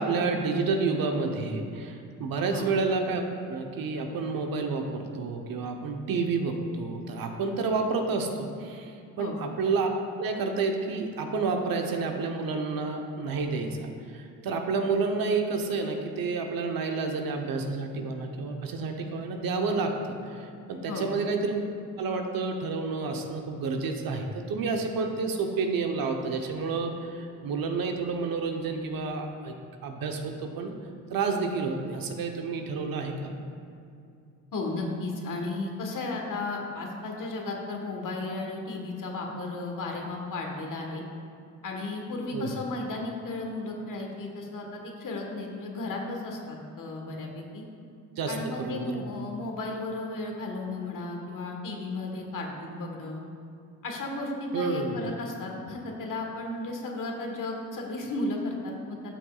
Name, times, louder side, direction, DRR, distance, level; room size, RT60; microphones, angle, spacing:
voice 1, 0.0-3.2 3.5-8.9 9.2-9.9 10.2-21.6 22.0-29.5 29.8-30.7 31.1-33.3 42.3-42.5 48.2-49.0 54.5-55.0, right 4 dB, 65° right, 3 dB, 1.0 m, -30 dB
voice 2, 34.5-41.0 41.6-47.6 48.3-53.2 53.8-59.1, left 2 dB, 55° left, 1 dB, 1.5 m, -34 dB
12.0 x 6.1 x 2.4 m, 2.5 s
supercardioid pair, 75°, 38 cm